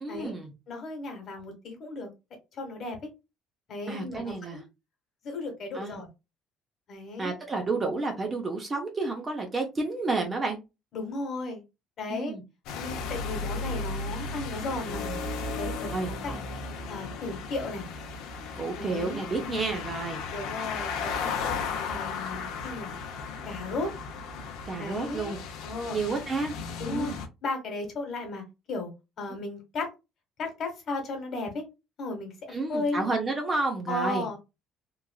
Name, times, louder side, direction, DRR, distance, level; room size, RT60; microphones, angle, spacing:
voice 1, 0.0-0.5 3.9-4.6 5.7-6.0 7.2-10.6 12.1-12.4 15.9-16.1 18.6-20.2 24.7-25.4 25.9-26.5 26.9-27.1 32.5-34.3, right 3 dB, 20° right, 0.6 m, -30 dB
voice 2, 0.7-2.1 2.5-3.1 3.7-4.6 5.2-6.1 6.9-7.4 10.9-11.6 12.0-12.4 12.7-15.0 15.5-16.4 16.9-17.9 18.7-19.9 20.3-21.4 21.9-22.9 23.4-23.9 24.8-25.3 25.6-26.0 26.8-27.1 27.4-28.9 29.2-29.9 30.4-31.6 32.0-33.0 33.9-34.4, left 2 dB, 45° left, 1.2 m, -35 dB
sound 1, 12.7-27.3, left 4 dB, 75° left, 0.6 m, -35 dB
3.0 x 2.4 x 2.3 m
cardioid pair, 150°, 0 cm